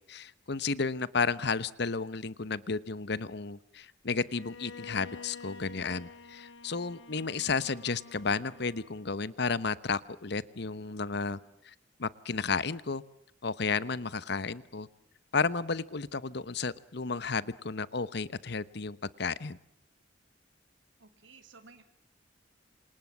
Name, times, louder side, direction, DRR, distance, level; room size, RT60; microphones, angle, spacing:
voice 1, 0.1-11.4 11.6-11.7 12.0-13.0 13.4-14.9 15.3-19.6, left 4 dB, 65° left, 17 dB, 1.0 m, -32 dB
Bowed string instrument, 4.3-9.3, left 4 dB, 90° left, 1.9 m, -49 dB
voice 2, 21.0-21.8, right 4 dB, 85° right, 7 dB, 2.9 m, -55 dB
27.5 x 27.5 x 7.4 m, 0.73 s
head